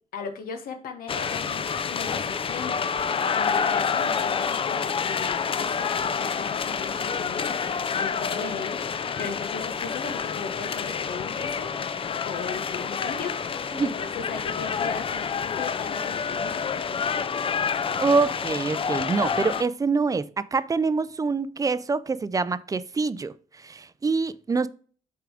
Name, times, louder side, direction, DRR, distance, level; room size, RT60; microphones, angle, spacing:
voice 1, 0.1-2.9 3.3-8.8 9.2-17.2, left 5 dB, 80° left, 1.0 m, -38 dB
sound 1, 1.1-19.6, left 6 dB, 35° left, 0.5 m, -28 dB
voice 2, 18.0-23.3 23.6-24.7, right 4 dB, 25° right, 0.4 m, -25 dB
5.8 x 3.7 x 4.9 m
cardioid pair, 95°, 15 cm